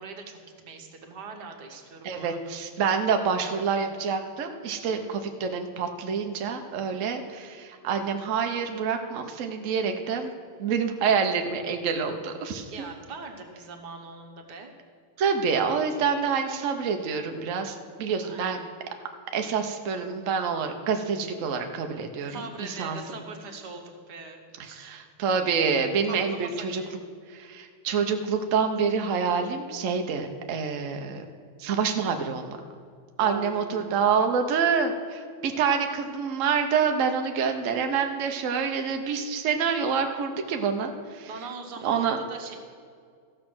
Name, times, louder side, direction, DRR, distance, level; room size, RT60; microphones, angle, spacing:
voice 1, 0.0-2.5 4.8-5.1 12.7-14.7 18.2-18.6 22.3-24.9 26.1-27.0 33.2-34.0 41.2-42.6, right 4 dB, 55° right, 3 dB, 1.5 m, -41 dB
voice 2, 2.0-10.3 10.6-12.7 15.2-18.6 19.3-23.0 24.8-26.8 27.3-31.3 31.6-32.6 33.2-41.3 41.8-42.2, right 6 dB, 80° right, 5 dB, 0.7 m, -27 dB
14.0 x 6.3 x 6.1 m, 2.2 s
omnidirectional pair, 2.4 m